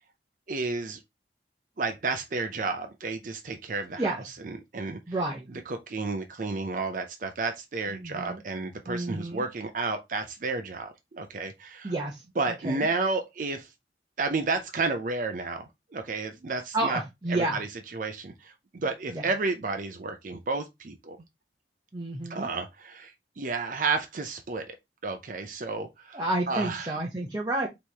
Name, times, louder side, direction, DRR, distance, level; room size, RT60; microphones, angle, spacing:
voice 1, 0.5-1.0 1.8-5.0 5.5-11.9 12.4-13.7 14.2-17.0 17.3-21.2 22.3-24.8 25.0-27.0, right 3 dB, 45° right, 0.5 m, -32 dB
voice 2, 5.1-5.5 7.9-8.4 8.9-9.4 11.8-12.2 12.6-12.9 16.7-17.6 19.1-19.3 21.9-22.5 26.1-27.7, right 2 dB, 20° right, 0.8 m, -30 dB
4.5 x 3.1 x 3.3 m
head